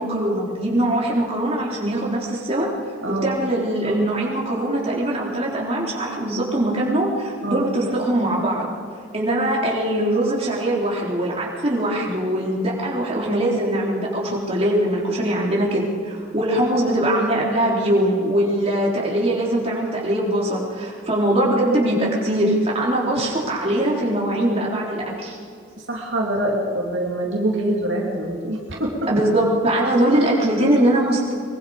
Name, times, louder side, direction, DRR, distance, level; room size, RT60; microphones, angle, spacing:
voice 1, 0.0-2.7 3.2-8.7 9.1-25.4 29.1-31.3, right 1 dB, 30° right, -4 dB, 4.0 m, -21 dB
voice 2, 3.0-3.4 7.4-7.6 25.9-29.1, right 1 dB, 60° right, -2 dB, 3.0 m, -24 dB
23.5 x 23.5 x 5.2 m, 2.4 s
head